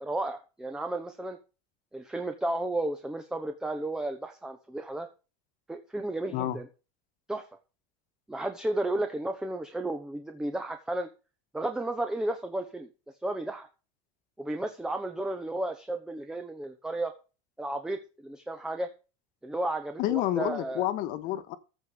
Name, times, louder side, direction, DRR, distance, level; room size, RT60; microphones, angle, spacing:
voice 1, 0.0-1.4 1.9-5.1 5.7-6.7 7.3-7.5 8.3-11.1 11.5-12.9 13.2-13.7 14.4-17.1 17.6-18.9 19.4-20.9, right 1 dB, 5° right, 1.0 m, -33 dB
voice 2, 20.0-21.6, left 14 dB, 45° left, 1.6 m, -29 dB
14.5 x 5.2 x 6.8 m
supercardioid pair, 160°, 19 cm